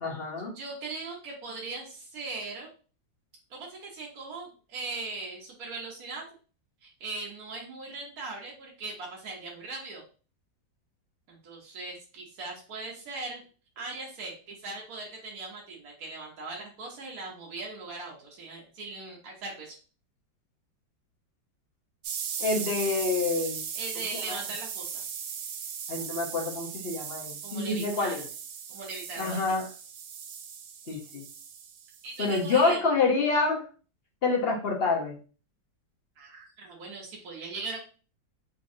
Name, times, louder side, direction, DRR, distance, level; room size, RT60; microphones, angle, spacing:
voice 1, 0.0-0.5 22.4-23.6 24.3-24.4 25.9-28.2 29.2-29.6 30.9-31.2 32.2-33.6 34.2-35.2, left 3 dB, 45° left, 0 dB, 0.8 m, -27 dB
voice 2, 0.5-2.7 3.5-6.2 6.8-10.0 11.3-13.4 13.8-19.8 23.7-25.0 27.4-28.2 28.7-29.6 32.0-32.8 36.2-37.8, right 3 dB, 55° right, -2 dB, 1.4 m, -39 dB
sound 1, 22.0-32.7, right 7 dB, 85° right, 0.7 m, -38 dB
4.1 x 3.1 x 2.6 m, 0.37 s
omnidirectional pair, 2.0 m